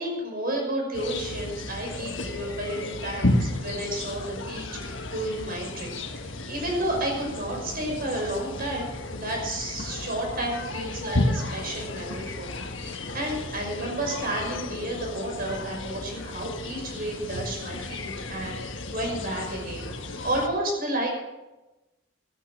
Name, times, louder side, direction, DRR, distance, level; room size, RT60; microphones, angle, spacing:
voice 1, 0.0-5.9 6.2-21.1, right 1 dB, 50° right, 0 dB, 6.0 m, -31 dB
sound 1, 0.9-20.5, left 2 dB, 75° left, 1.5 m, -33 dB
14.0 x 13.0 x 6.2 m, 1.0 s
head